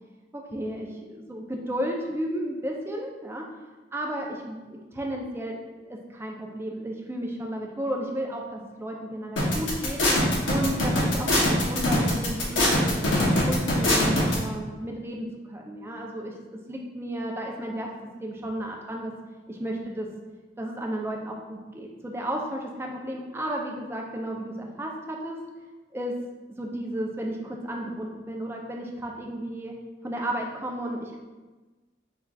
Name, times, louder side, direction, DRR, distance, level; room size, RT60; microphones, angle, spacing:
voice 1, 0.3-3.5 3.9-5.6 5.9-10.0 10.5-16.3 16.7-17.9 18.2-19.1 19.5-20.1 20.6-25.4 25.9-26.1 26.6-29.7 30.0-31.2, right 1 dB, 15° right, 0 dB, 0.4 m, -33 dB
sound 1, 9.4-14.3, left 1 dB, 85° left, 0.9 m, -22 dB
4.4 x 3.6 x 2.3 m, 1.2 s
head